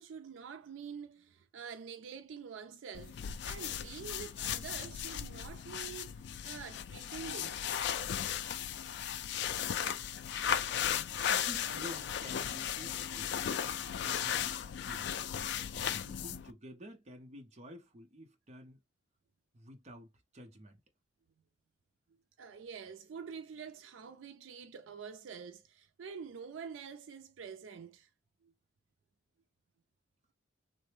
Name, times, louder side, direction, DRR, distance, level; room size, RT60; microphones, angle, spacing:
voice 1, 0.0-3.2 3.4-7.6 22.4-28.1, right 6 dB, 75° right, 0.4 m, -47 dB
sound 1, 2.9-16.5, left 9 dB, 60° left, 0.3 m, -36 dB
voice 2, 11.3-15.2 15.7-18.8 19.5-20.8, equal, 35° right, 0.7 m, -51 dB
3.3 x 2.0 x 3.3 m
head